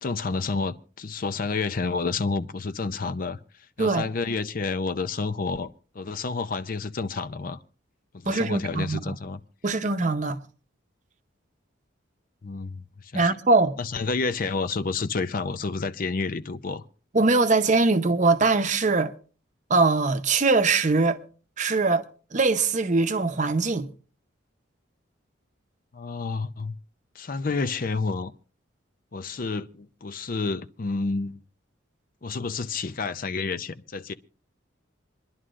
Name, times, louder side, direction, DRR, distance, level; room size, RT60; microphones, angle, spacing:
voice 1, 0.0-3.4 3.8-7.6 8.1-9.4 12.4-13.3 13.8-16.8 25.9-26.8 27.2-28.3 29.1-31.4 32.2-34.1, left 4 dB, 45° left, 0.5 m, -29 dB
voice 2, 8.3-9.1 9.6-10.4 13.1-13.8 17.1-19.1 19.7-21.2 21.6-22.0 22.3-23.9, right 3 dB, 40° right, 0.8 m, -22 dB
27.0 x 11.0 x 2.5 m
head